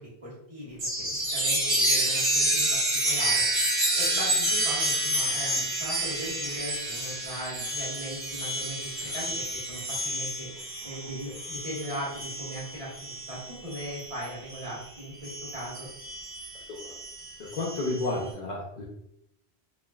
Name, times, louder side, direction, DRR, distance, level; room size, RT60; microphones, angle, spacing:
voice 1, 0.0-2.8 3.0-10.5 10.8-15.9, equal, 35° right, -6 dB, 1.1 m, -39 dB
Chime, 0.8-14.8 15.2-18.1, right 1 dB, 65° right, 1.1 m, -29 dB
voice 2, 17.4-18.8, left 2 dB, 55° left, -4 dB, 0.6 m, -31 dB
3.1 x 2.4 x 2.3 m, 0.77 s
omnidirectional pair, 1.1 m